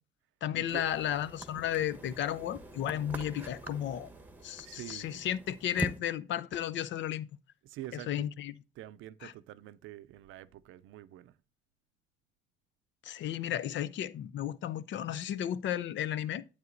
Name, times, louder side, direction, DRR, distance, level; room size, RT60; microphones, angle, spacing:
voice 1, 0.4-4.1 4.4-7.3 7.9-8.5 9.2-9.3 13.0-16.5, left 11 dB, 70° left, 0.5 m, -34 dB
sound 1, 0.7-6.0, right 1 dB, 10° right, 1.0 m, -43 dB
voice 2, 4.6-5.2 7.6-8.3 8.8-11.4, right 14 dB, 85° right, 0.5 m, -46 dB
9.5 x 8.2 x 2.5 m
cardioid pair, 90°, 20 cm